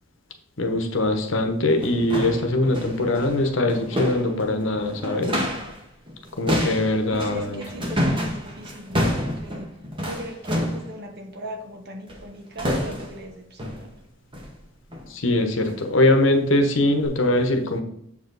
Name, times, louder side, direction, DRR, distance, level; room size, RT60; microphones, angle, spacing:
voice 1, 0.6-5.4 6.4-7.6 15.1-17.8, left 1 dB, 70° left, 5 dB, 1.0 m, -22 dB
sound 1, 1.6-5.8 6.1-10.9 12.1-12.3 12.6-13.2 13.6-13.9 14.3-14.6 14.9-15.1 15.6-15.8 16.3-16.4 17.0-17.1, equal, 25° right, 1.5 m, -28 dB
voice 2, 7.0-9.7 10.0-13.9, right 1 dB, 55° right, 4 dB, 1.2 m, -39 dB
7.1 x 4.9 x 4.0 m, 0.71 s
head